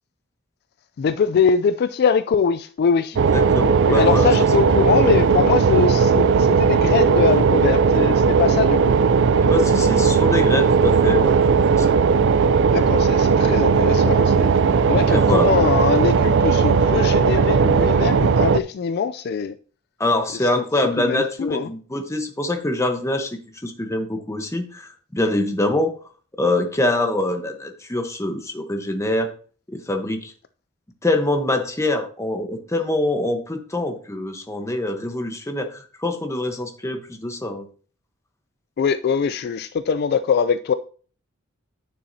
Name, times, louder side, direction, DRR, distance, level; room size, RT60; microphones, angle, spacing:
voice 1, 1.0-3.2 3.9-8.9 12.7-14.5 14.9-19.5 20.4-20.5 21.0-21.7 38.8-40.7, left 6 dB, 50° left, 0.3 m, -22 dB
sound 1, 3.2-18.6, right 5 dB, 60° right, 0.4 m, -17 dB
voice 2, 3.3-4.3 4.6-4.9 9.4-11.4 11.8-11.9 15.1-15.5 20.0-26.0 26.4-29.3 29.7-30.3 31.0-37.7, left 1 dB, 15° left, 1.0 m, -24 dB
9.3 x 6.9 x 2.7 m
head